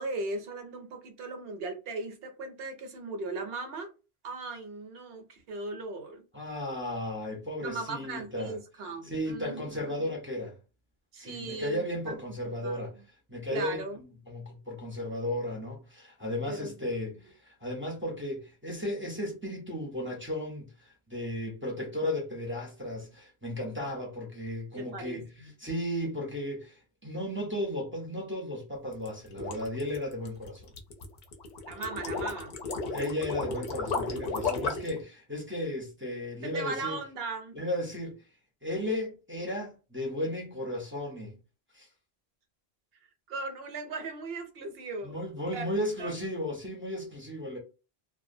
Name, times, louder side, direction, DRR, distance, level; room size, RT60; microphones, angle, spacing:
voice 1, 0.0-3.9 4.2-6.2 7.6-10.1 11.1-12.9 13.5-14.0 16.4-16.7 24.8-25.5 31.6-32.5 34.7-34.9 36.4-37.6 43.3-45.1 45.5-45.7 46.0-46.1, right 3 dB, 75° right, 0.8 m, -38 dB
voice 2, 6.3-8.5 9.0-10.5 11.2-12.9 13.3-25.3 25.6-30.7 32.9-37.0 37.5-38.1 38.6-41.4 41.7-41.9 45.0-47.6, left 1 dB, 15° right, 0.5 m, -35 dB
sound 1, 28.9-35.0, left 4 dB, 55° left, 0.6 m, -34 dB
2.3 x 2.1 x 2.5 m
omnidirectional pair, 1.0 m